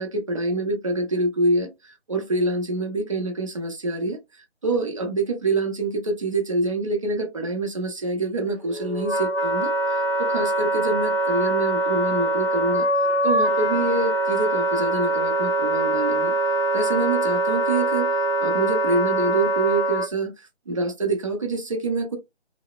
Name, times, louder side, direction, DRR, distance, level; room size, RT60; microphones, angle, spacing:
voice 1, 0.0-4.2 4.6-12.9 13.2-16.3 16.7-18.1 18.4-22.2, right 2 dB, 30° right, 0.5 m, -26 dB
Wind instrument woodwind instrument, 8.5-20.1, right 1 dB, 30° left, 0.7 m, -23 dB
2.7 x 2.0 x 2.3 m
figure-of-eight pair, 155°, 34 cm